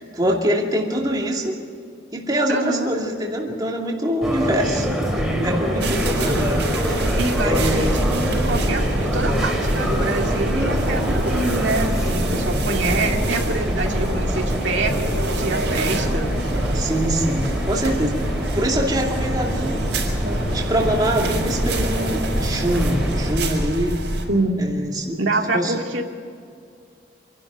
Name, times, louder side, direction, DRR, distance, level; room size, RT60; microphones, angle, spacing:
voice 1, 0.0-1.6 2.1-4.9 5.1-6.5 6.9-7.0 7.4-8.0 16.7-19.8 20.2-24.0 24.6-25.7, equal, 20° right, -1 dB, 2.4 m, -24 dB
voice 2, 2.5-2.9 5.8-6.2 7.1-16.3 24.3-24.6 25.2-26.1, right 2 dB, 85° right, 2 dB, 2.2 m, -25 dB
sound 1, 4.2-23.3, equal, ahead, 2.7 m, -26 dB
sound 2, 5.8-24.3, right 1 dB, 70° right, 5.2 m, -26 dB
27.5 x 12.0 x 9.2 m, 2.3 s
head